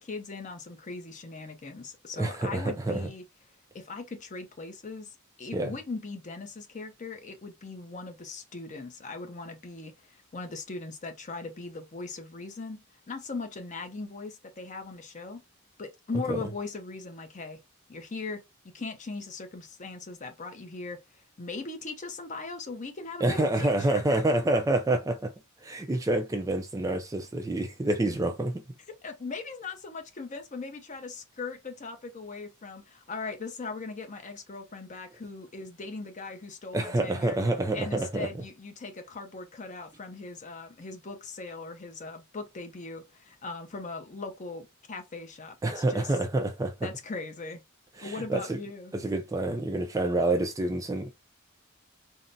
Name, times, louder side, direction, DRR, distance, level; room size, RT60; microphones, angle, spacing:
voice 1, 0.0-3.2 3.7-15.4 15.8-17.6 17.9-18.4 18.7-21.0 21.4-24.2 29.0-37.4 37.7-46.2 46.8-47.6 48.0-48.9, left 3 dB, 35° left, 0.6 m, -39 dB
voice 2, 2.2-3.1 5.5-5.7 16.3-16.4 23.2-25.3 25.6-28.6 36.7-38.3 45.6-46.9 48.0-48.6 48.9-51.1, right 2 dB, 15° right, 0.3 m, -27 dB
3.7 x 2.0 x 2.6 m
head